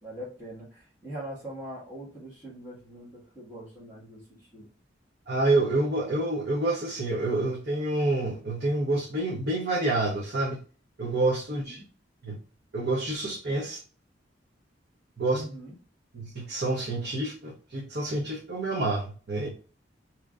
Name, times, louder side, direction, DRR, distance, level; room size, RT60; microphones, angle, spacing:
voice 1, 0.0-4.7 11.6-11.9 15.3-15.7, right 1 dB, 15° right, 1.8 m, -42 dB
voice 2, 5.3-10.6 11.0-11.8 12.2-12.4 12.7-13.8 15.2-15.4 16.1-19.5, right 2 dB, 55° right, 1.0 m, -28 dB
4.7 x 3.0 x 2.5 m
head